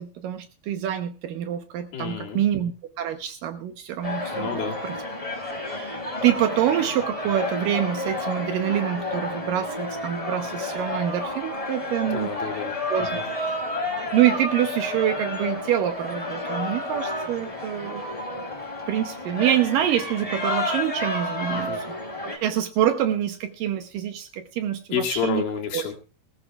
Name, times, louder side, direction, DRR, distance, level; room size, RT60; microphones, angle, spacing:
voice 1, 0.0-2.7 3.0-4.9 5.5-12.3 12.9-13.1 13.4-13.6 14.1-18.0 18.9-21.9 22.2-25.4 25.7-25.8, right 11 dB, 75° right, 8 dB, 2.3 m, -26 dB
voice 2, 1.9-2.4 4.3-4.8 12.1-13.2 21.5-21.8 24.9-25.9, left 7 dB, 70° left, 1 dB, 3.6 m, -30 dB
sound 1, 4.0-22.4, left 1 dB, 10° left, 2.2 m, -31 dB
19.0 x 15.0 x 2.3 m, 0.34 s
omnidirectional pair, 4.4 m